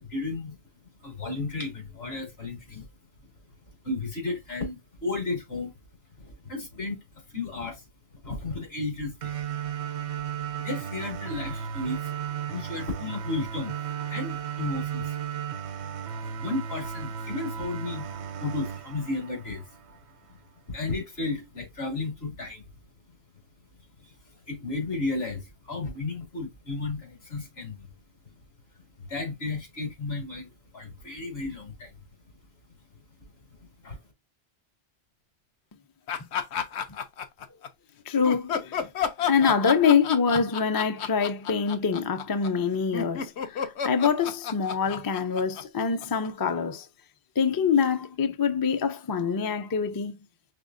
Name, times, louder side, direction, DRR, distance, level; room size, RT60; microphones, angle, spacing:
voice 1, 0.1-0.5 1.0-2.9 3.8-5.7 6.2-7.0 7.3-7.8 8.2-9.4 10.6-12.1 12.5-13.7 14.1-15.2 16.4-19.6 20.7-22.6 24.5-27.9 29.1-30.5 30.7-31.9 33.8-34.0, left 3 dB, 70° left, 2.1 m, -33 dB
sound 1, 9.2-20.2, right 8 dB, 85° right, 0.9 m, -35 dB
sound 2, 36.1-37.7 38.2-46.5, left 7 dB, 85° left, 1.0 m, -31 dB
voice 2, 38.1-38.9 39.3-46.9 47.4-50.2, left 6 dB, 40° left, 0.3 m, -25 dB
5.1 x 3.5 x 2.5 m
omnidirectional pair, 1.1 m